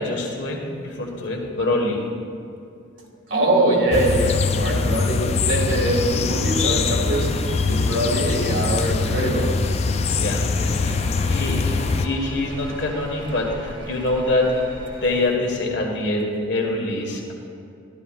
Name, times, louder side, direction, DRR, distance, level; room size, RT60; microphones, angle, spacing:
voice 1, 0.0-2.0 4.5-5.3 10.2-10.5 10.8-17.3, left 2 dB, 60° left, 0 dB, 1.7 m, -25 dB
voice 2, 3.3-7.3 7.7-9.5, right 1 dB, 65° right, -3 dB, 2.1 m, -22 dB
sound 1, 3.9-12.1, left 4 dB, 30° left, 0.3 m, -23 dB
sound 2, 5.5-15.3, right 1 dB, 80° right, 2.8 m, -39 dB
13.5 x 12.0 x 2.5 m, 2.5 s
head